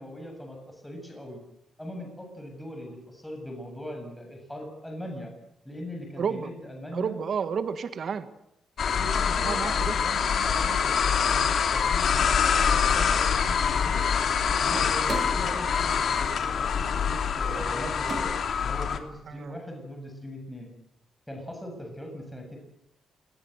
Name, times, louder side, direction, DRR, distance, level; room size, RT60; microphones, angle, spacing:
voice 1, 0.0-1.4 1.8-5.3 5.6-7.2 8.9-14.1 14.6-20.7 21.3-22.6, left 1 dB, 5° left, 2 dB, 7.4 m, -40 dB
voice 2, 6.2-6.5 6.9-8.3 9.4-10.0 17.8-17.9 19.3-19.6, right 6 dB, 55° right, 10 dB, 1.7 m, -31 dB
sound 1, 8.8-19.0, left 7 dB, 60° left, 2.9 m, -25 dB
sound 2, 14.7-18.8, right 3 dB, 35° right, 3.7 m, -40 dB
27.0 x 20.5 x 8.0 m, 0.79 s
cardioid pair, 115°, 0 cm